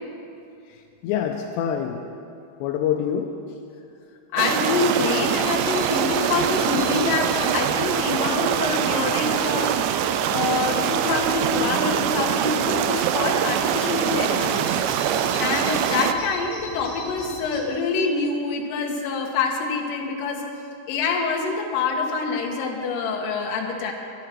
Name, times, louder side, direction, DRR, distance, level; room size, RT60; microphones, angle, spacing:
voice 1, 0.7-2.1 2.6-3.4, left 9 dB, 85° left, 3 dB, 2.6 m, -26 dB
voice 2, 4.3-9.8 10.3-14.8 15.4-20.4 20.9-23.9, left 4 dB, 65° left, 1 dB, 2.4 m, -26 dB
sound 1, 4.4-16.1, right 9 dB, 80° right, 2.6 m, -23 dB
Bird vocalization bird call bird song, 5.2-17.6, left 1 dB, 25° left, 4.2 m, -41 dB
23.5 x 10.5 x 4.6 m, 2.6 s
omnidirectional pair, 5.7 m